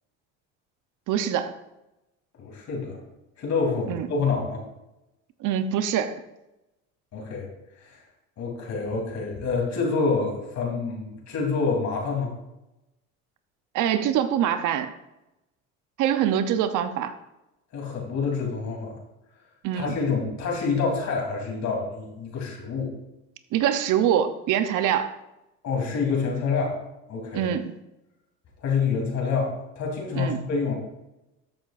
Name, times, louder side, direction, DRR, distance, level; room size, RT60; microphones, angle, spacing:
voice 1, 1.1-1.5 3.9-4.1 5.4-6.2 13.7-14.9 16.0-17.1 19.6-19.9 23.5-25.1 27.3-27.7 30.1-30.4, right 9 dB, 65° right, 10 dB, 0.9 m, -24 dB
voice 2, 2.4-3.0 3.4-4.6 7.1-7.5 7.8-8.0 8.4-12.3 17.7-19.0 19.7-22.9 25.6-26.8 27.1-27.5 28.6-30.7, left 4 dB, 55° left, 0 dB, 3.5 m, -27 dB
13.5 x 7.5 x 2.6 m, 0.93 s
supercardioid pair, 90°, 34 cm